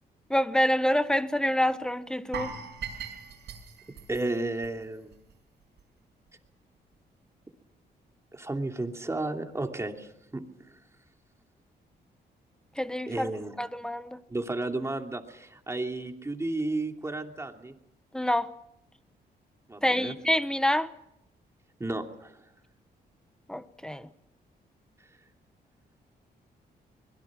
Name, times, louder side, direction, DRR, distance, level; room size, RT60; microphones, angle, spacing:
voice 1, 0.3-2.5 12.8-13.3 13.6-14.2 18.1-18.5 19.8-20.9 23.5-24.1, left 1 dB, 5° left, 1.2 m, -27 dB
sound 1, 2.3-5.3 5.6-5.8 6.3-6.4, right 6 dB, 85° right, 5.8 m, -40 dB
voice 2, 4.1-5.1 8.3-10.4 13.1-13.5 14.3-17.7 19.7-20.1 21.8-22.4, right 2 dB, 15° right, 2.8 m, -33 dB
25.0 x 22.0 x 6.2 m
cardioid pair, 110°, 18 cm